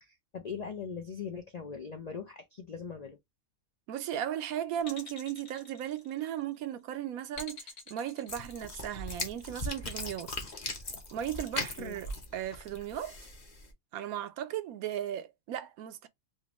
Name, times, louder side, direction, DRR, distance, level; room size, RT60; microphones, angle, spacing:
voice 1, 0.0-3.2 11.8-12.0, left 6 dB, 80° left, 0.3 m, -40 dB
voice 2, 3.9-10.3 11.1-13.2 13.9-16.1, right 10 dB, 80° right, 1.0 m, -36 dB
sound 1, 4.8-6.5 7.3-9.0 10.0-11.6, left 3 dB, 60° left, 1.7 m, -47 dB
sound 2, 8.3-13.7, left 2 dB, 35° left, 0.9 m, -39 dB
3.7 x 2.5 x 2.9 m
omnidirectional pair, 1.5 m